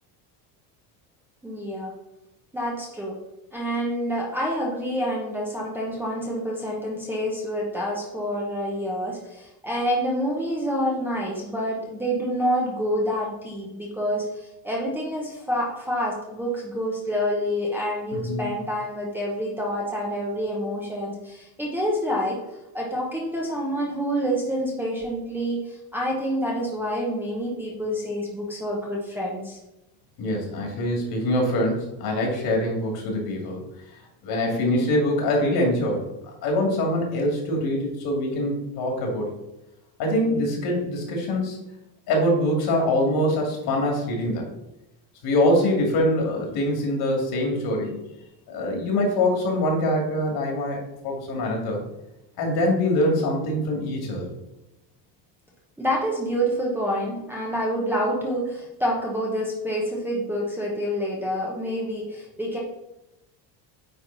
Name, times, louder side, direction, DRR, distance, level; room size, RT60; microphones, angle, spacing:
voice 1, 1.4-1.9 2.5-3.2 3.5-22.4 22.7-29.6 55.8-62.6, equal, 5° right, -4 dB, 1.0 m, -27 dB
voice 2, 18.1-18.5 30.2-33.6 34.2-39.3 40.0-41.6 42.1-44.5 45.2-48.0 48.5-51.8 52.4-54.3, left 1 dB, 50° left, 0 dB, 2.4 m, -24 dB
9.3 x 3.7 x 4.0 m, 0.92 s
cardioid pair, 150°, 47 cm